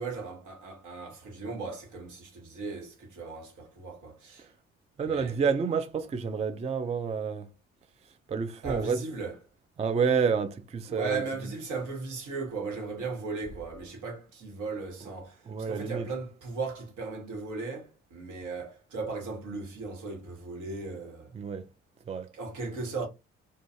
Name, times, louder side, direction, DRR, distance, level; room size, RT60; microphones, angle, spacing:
voice 1, 0.0-4.5 5.0-5.4 8.6-9.4 10.9-21.3 22.3-23.1, right 4 dB, 65° right, 1.2 m, -37 dB
voice 2, 5.0-7.5 8.3-9.0 9.8-11.2 15.5-16.1 21.4-21.6 22.1-22.3, right 6 dB, 20° right, 0.3 m, -29 dB
2.4 x 2.2 x 2.6 m
hypercardioid pair, 45°, 33 cm